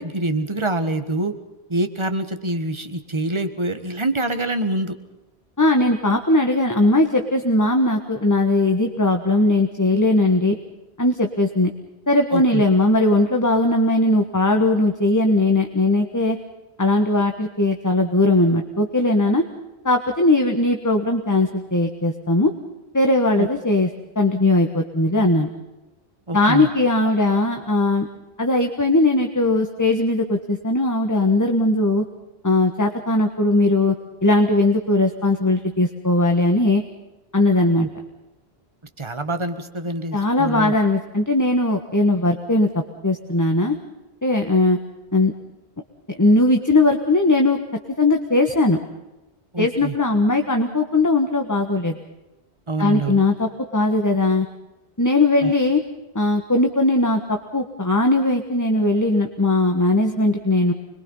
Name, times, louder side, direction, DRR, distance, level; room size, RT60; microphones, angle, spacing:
voice 1, 0.0-1.3 1.7-5.0 12.3-12.6 23.3-23.5 26.3-26.7 37.8-37.9 39.0-40.7 49.5-50.0 52.7-53.2 55.4-55.5, right 2 dB, 25° right, 9 dB, 1.7 m, -25 dB
voice 2, 5.6-10.6 11.0-11.7 12.1-16.4 16.8-19.4 19.8-22.5 22.9-23.9 24.1-25.5 26.3-28.1 28.4-32.0 32.4-33.9 34.2-36.8 37.3-37.9 40.1-43.8 44.2-44.8 45.1-45.3 46.1-47.6 47.9-48.8 49.6-52.0 52.8-54.5 55.0-55.8 56.1-60.7, left 2 dB, 15° left, 4 dB, 1.4 m, -19 dB
26.0 x 22.0 x 5.6 m, 1.0 s
omnidirectional pair, 1.1 m